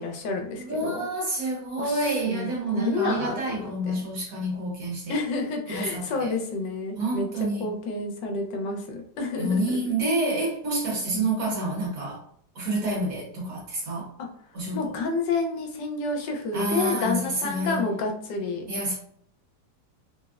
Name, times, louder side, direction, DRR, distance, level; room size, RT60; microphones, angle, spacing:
voice 1, 0.0-1.0 1.8-3.7 5.1-7.3 7.6-9.8 11.1-11.3 14.7-18.6, left 3 dB, 90° left, 2 dB, 1.3 m, -29 dB
voice 2, 0.6-5.1 5.7-6.3 7.0-7.7 9.4-12.2 12.5-14.1 14.5-14.9 16.5-17.8 18.7-19.0, right 1 dB, 60° right, -3 dB, 1.1 m, -28 dB
3.4 x 2.0 x 2.3 m, 0.66 s
omnidirectional pair, 1.9 m